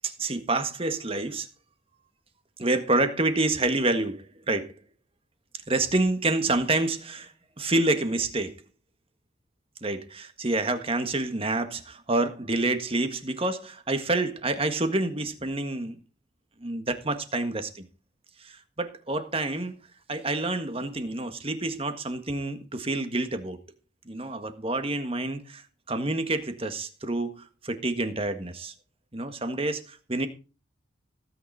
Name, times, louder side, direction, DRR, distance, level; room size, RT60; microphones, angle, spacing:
voice 1, 0.0-1.5 2.6-4.7 5.7-8.6 9.8-16.0 16.6-17.8 18.4-19.8 20.1-23.6 24.1-28.7 29.1-30.3, right 2 dB, 30° right, 1.7 m, -28 dB
17.0 x 9.2 x 4.2 m
head